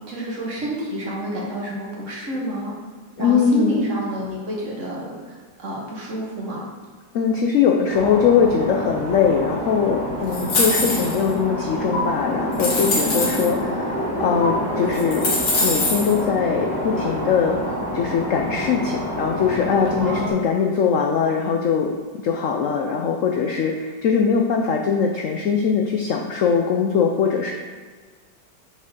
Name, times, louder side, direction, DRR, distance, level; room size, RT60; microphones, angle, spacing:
voice 1, 0.1-2.7 3.2-6.7 20.0-20.5, equal, 45° right, -4 dB, 1.7 m, -29 dB
voice 2, 3.2-4.0 7.1-15.3 15.6-17.6 17.9-21.9 22.2-27.5, left 6 dB, 75° left, 2 dB, 0.7 m, -21 dB
sound 1, 7.9-20.3, equal, 5° left, 1.3 m, -27 dB
sound 2, 10.3-11.3 11.9-12.0 12.5-13.5 14.4-14.5 14.9-16.1, left 2 dB, 60° left, 1.9 m, -23 dB
5.9 x 4.4 x 5.3 m, 1.5 s
omnidirectional pair, 2.0 m